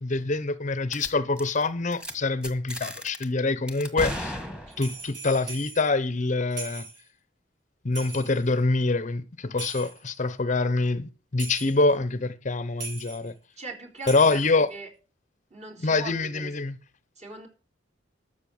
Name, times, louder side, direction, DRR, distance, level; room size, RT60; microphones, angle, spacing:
voice 1, 0.0-4.4 4.8-6.8 7.8-13.3 14.1-14.7 15.8-16.8, left 3 dB, 40° left, 0.8 m, -25 dB
sound 1, 0.9-1.1 1.4-1.6 1.9-2.1 2.4-3.2 3.7-5.0, equal, 5° right, 1.8 m, -35 dB
sound 2, 4.7-5.9 6.5-7.0 7.9-8.5 9.6-10.2 11.4-11.8 12.8-13.3 14.0-14.6, right 4 dB, 65° right, 7.6 m, -40 dB
voice 2, 13.6-14.9 15.5-16.5 17.2-17.5, right 3 dB, 40° right, 3.9 m, -41 dB
13.0 x 6.7 x 7.1 m
head